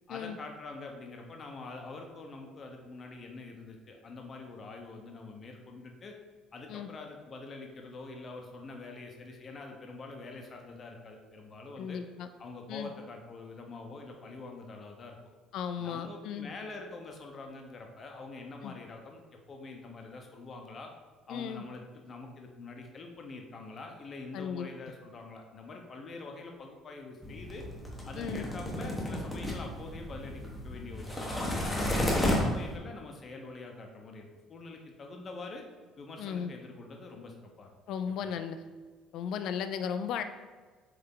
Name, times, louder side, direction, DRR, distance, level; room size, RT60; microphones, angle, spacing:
voice 1, 0.1-6.1 6.5-12.0 12.4-15.2 15.8-20.9 21.3-27.6 28.1-31.8 32.1-35.6 36.0-37.7 38.2-38.3, left 3 dB, 30° left, 2 dB, 0.9 m, -45 dB
voice 2, 11.8-12.3 12.7-12.9 15.5-16.5 18.6-18.7 21.3-21.6 24.3-24.7 28.2-28.4 36.2-36.5 37.9-38.6 39.1-40.2, left 7 dB, 60° left, 9 dB, 0.5 m, -35 dB
sound 1, 27.2-32.8, left 1 dB, 10° left, 1.0 m, -32 dB
7.7 x 3.4 x 3.8 m, 1.4 s
cardioid pair, 150°, 0 cm